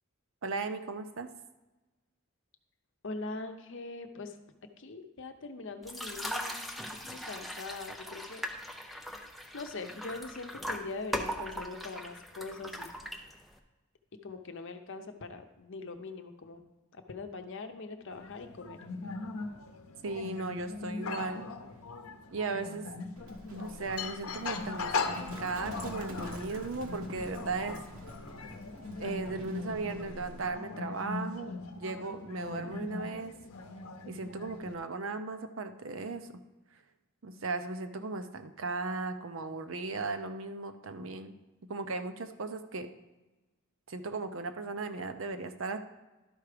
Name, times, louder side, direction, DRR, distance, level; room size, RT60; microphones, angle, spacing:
voice 1, 0.4-1.3 20.0-21.4 22.3-22.9 23.5-27.8 29.0-33.3 34.1-36.4 37.2-41.3 41.7-42.9 43.9-45.8, right 3 dB, 65° right, 9 dB, 0.6 m, -37 dB
voice 2, 3.0-4.4 4.8-6.6 7.0-8.4 8.7-13.0 14.2-16.6 16.9-18.8, left 3 dB, 60° left, 7 dB, 0.8 m, -42 dB
sound 1, 5.8-13.6, equal, ahead, 0.5 m, -40 dB
sound 2, 18.1-34.7, left 4 dB, 90° left, 0.7 m, -40 dB
Livestock farm animals working animals, 23.2-30.5, right 1 dB, 80° right, 1.3 m, -48 dB
12.0 x 4.7 x 5.0 m, 1.1 s
head